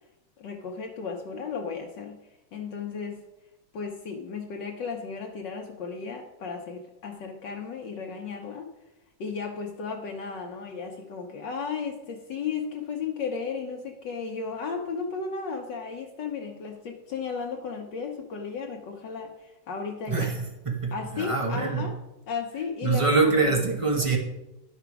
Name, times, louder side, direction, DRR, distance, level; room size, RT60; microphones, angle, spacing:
voice 1, 0.4-2.2 2.5-3.2 3.7-8.7 9.2-20.3 20.9-21.9 22.3-23.6, left 5 dB, 65° left, 1.4 m, -34 dB
voice 2, 20.1-21.9 22.8-24.2, right 4 dB, 25° right, 0.6 m, -25 dB
11.0 x 6.0 x 4.7 m
omnidirectional pair, 2.2 m